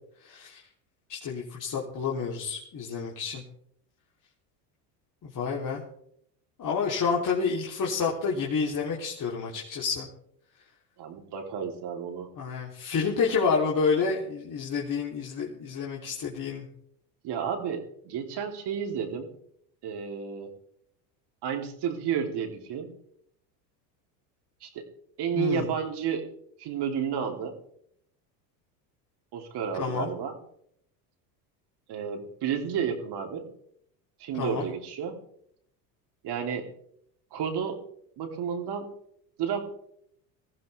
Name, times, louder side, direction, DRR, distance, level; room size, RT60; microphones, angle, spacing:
voice 1, 0.2-0.6 1.1-3.4 5.2-5.8 6.6-10.1 12.4-16.7 25.3-25.7 29.7-30.1 34.3-34.7, left 5 dB, 40° left, -3 dB, 3.3 m, -29 dB
voice 2, 11.0-12.3 17.2-19.3 19.8-20.5 21.4-22.9 24.6-24.9 25.2-26.3 26.6-27.5 29.3-30.4 31.9-33.5 34.2-35.2 36.2-36.7 37.3-37.8 38.2-38.9 39.4-39.6, right 7 dB, 50° right, 3 dB, 3.3 m, -31 dB
20.0 x 15.0 x 3.5 m, 0.69 s
hypercardioid pair, 85°, 50 cm